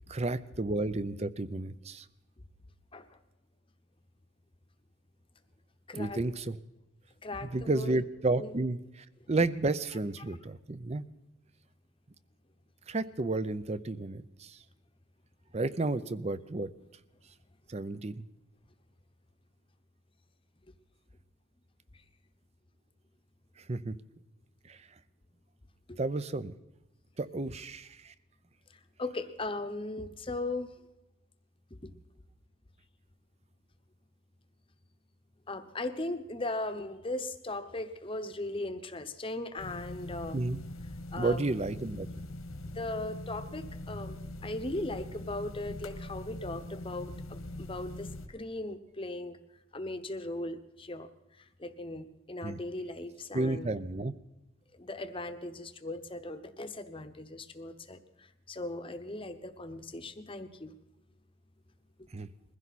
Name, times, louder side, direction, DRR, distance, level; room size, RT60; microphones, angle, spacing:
voice 1, 0.1-2.1 5.9-6.6 7.5-11.1 12.9-14.6 15.5-16.7 17.7-18.2 23.7-24.0 24.7-24.8 26.0-26.5 27.2-28.1 40.3-40.6 41.2-42.1 52.4-52.6 53.3-54.1 62.1-62.3, right 2 dB, 30° right, 15 dB, 0.6 m, -32 dB
voice 2, 5.9-6.2 7.2-8.0 8.4-8.5 25.9-26.0 28.7-30.7 31.7-31.9 35.5-40.4 41.1-41.4 42.7-44.2 44.4-49.4 49.7-51.1 51.4-53.7 54.7-60.7, left 2 dB, 25° left, 9 dB, 0.9 m, -38 dB
sound 1, 39.6-48.3, left 1 dB, 80° left, 1.6 m, -42 dB
22.0 x 15.5 x 4.2 m, 0.97 s
head